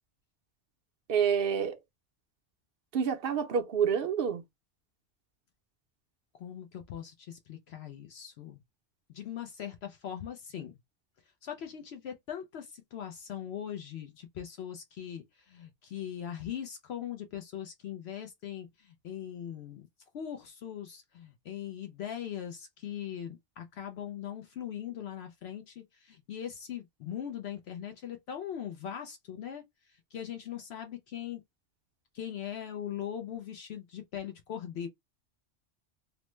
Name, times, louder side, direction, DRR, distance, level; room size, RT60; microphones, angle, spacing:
voice 1, 1.1-1.8 2.9-4.4, right 7 dB, 60° right, 0.7 m, -28 dB
voice 2, 6.4-8.6 9.1-10.7 11.4-19.9 20.1-29.6 30.1-31.4 32.1-34.9, left 9 dB, 65° left, 0.8 m, -40 dB
3.0 x 2.0 x 3.1 m
omnidirectional pair, 1.2 m